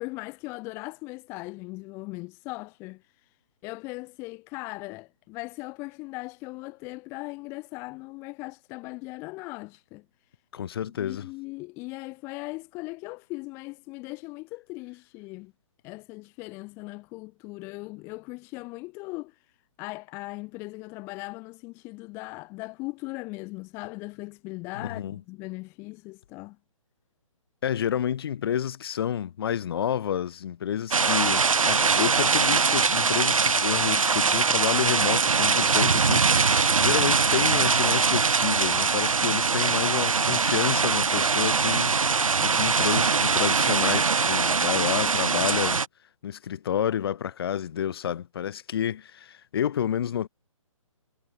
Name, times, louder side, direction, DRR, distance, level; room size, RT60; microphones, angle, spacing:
voice 1, 0.0-3.0 3.6-10.0 11.0-15.5 15.8-19.4 19.8-26.6, left 24 dB, 15° left, 0.5 m, -39 dB
voice 2, 10.5-11.3 24.7-25.2 27.6-45.8 46.2-50.3, left 9 dB, 45° left, 1.7 m, -30 dB
sound 1, 30.9-45.9, right 5 dB, 75° right, 1.1 m, -22 dB
sound 2, 31.2-43.6, right 18 dB, 30° right, 1.6 m, -48 dB
figure-of-eight pair, 140°, 18 cm